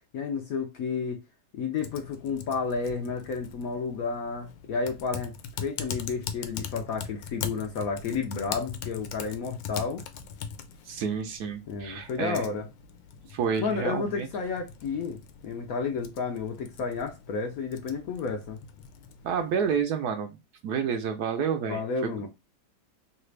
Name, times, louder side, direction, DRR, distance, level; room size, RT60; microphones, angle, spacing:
voice 1, 0.1-1.2 1.5-10.0 11.7-12.7 13.6-15.2 15.4-18.6 21.7-22.3, left 5 dB, 65° left, 0.9 m, -31 dB
Typing, 1.8-19.8, left 7 dB, 85° left, 1.3 m, -42 dB
voice 2, 10.8-12.5 13.3-14.3 19.2-20.4 20.6-22.3, right 6 dB, 70° right, 1.0 m, -29 dB
3.3 x 2.4 x 3.1 m
omnidirectional pair, 2.0 m